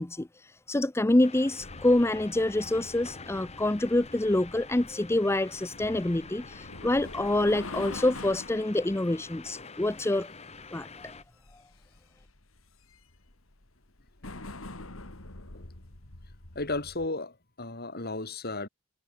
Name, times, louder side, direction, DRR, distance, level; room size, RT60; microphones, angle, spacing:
voice 1, 0.0-10.3 10.7-11.2, left 1 dB, 15° left, 0.6 m, -26 dB
sound 1, 1.2-11.2, left 4 dB, 30° left, 1.8 m, -47 dB
sound 2, 1.6-17.1, left 2 dB, 85° left, 2.8 m, -46 dB
voice 2, 16.5-18.7, left 2 dB, 50° left, 5.1 m, -34 dB
head